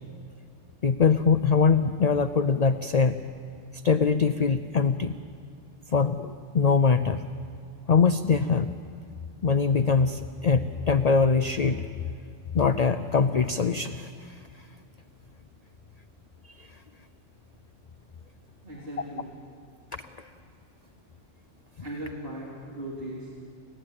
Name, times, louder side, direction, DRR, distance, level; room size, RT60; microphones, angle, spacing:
voice 1, 0.8-3.2 3.7-5.2 5.9-7.2 7.9-8.7 9.4-11.9 12.5-14.4 16.6-16.8 20.2-20.3, left 5 dB, 50° left, 9 dB, 0.5 m, -23 dB
voice 2, 18.6-19.3 21.8-23.4, right 1 dB, 45° right, -6 dB, 3.4 m, -38 dB
30.0 x 11.5 x 8.8 m, 2.5 s
omnidirectional pair, 1.3 m